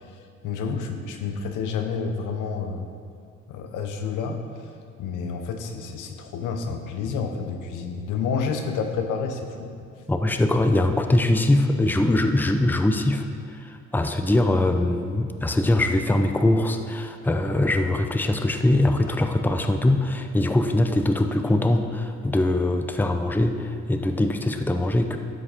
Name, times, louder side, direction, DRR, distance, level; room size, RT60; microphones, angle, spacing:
voice 1, 0.1-2.8 3.5-4.4 5.0-9.7, left 5 dB, 90° left, 5 dB, 1.0 m, -29 dB
voice 2, 10.1-13.3 13.5-25.2, left 1 dB, 5° left, 6 dB, 0.6 m, -22 dB
12.0 x 6.3 x 5.2 m, 2.3 s
cardioid pair, 90°, 30 cm